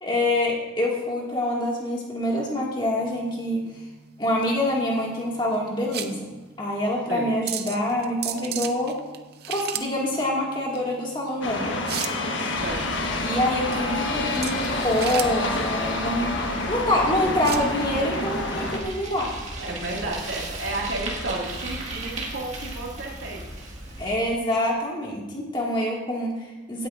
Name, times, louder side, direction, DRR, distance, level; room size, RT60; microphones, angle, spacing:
voice 1, 0.0-3.7 4.2-8.9 9.5-11.7 13.2-19.3 24.0-26.9, left 1 dB, 25° left, -3 dB, 2.0 m, -26 dB
sound 1, 3.0-17.7, right 10 dB, 55° right, 0.6 m, -36 dB
sound 2, 11.4-18.8, left 2 dB, 75° left, 1.3 m, -28 dB
Bicycle, 12.5-24.2, right 1 dB, 35° right, 1.9 m, -37 dB
voice 2, 12.6-13.1 17.2-17.4 19.6-23.5, right 2 dB, 70° right, -2 dB, 2.1 m, -32 dB
16.5 x 9.2 x 2.5 m, 1.2 s
head